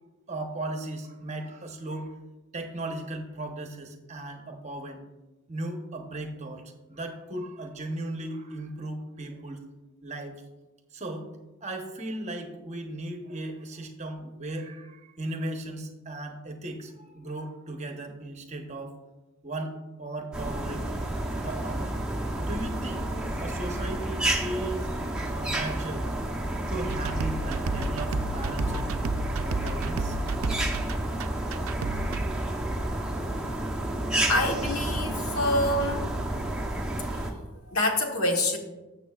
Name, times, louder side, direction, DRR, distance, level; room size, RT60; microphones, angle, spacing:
voice 1, 0.3-2.1 2.5-5.0 5.5-6.6 6.9-9.6 10.0-10.3 10.9-11.3 11.6-19.0 19.4-20.9 21.4-22.0 22.4-23.0 23.4-24.9 25.3-26.1 26.7-28.8 29.4-30.2 30.5-30.7, right 1 dB, 30° right, 4 dB, 0.9 m, -36 dB
sound 1, 20.3-37.3, right 1 dB, 5° right, 0.8 m, -30 dB
sound 2, 26.9-32.2, right 3 dB, 70° right, 0.4 m, -32 dB
voice 2, 34.3-36.1 37.7-38.6, left 1 dB, 80° left, 3 dB, 1.3 m, -26 dB
12.5 x 7.0 x 2.4 m, 1.1 s
head